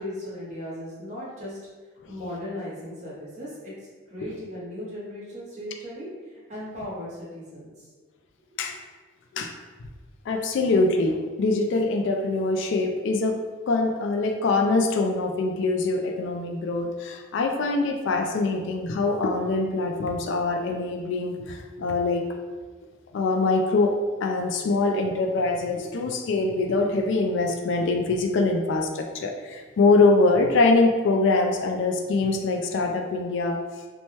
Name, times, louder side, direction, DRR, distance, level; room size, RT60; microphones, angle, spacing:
voice 1, 0.0-1.6 2.1-3.7 4.1-7.9 8.6-8.7, left 1 dB, 35° right, -7 dB, 1.0 m, -37 dB
voice 2, 10.3-13.4 13.7-22.3 23.1-23.9 24.2-33.6, left 3 dB, 60° left, 4 dB, 0.3 m, -23 dB
2.8 x 2.2 x 3.0 m, 1.4 s
head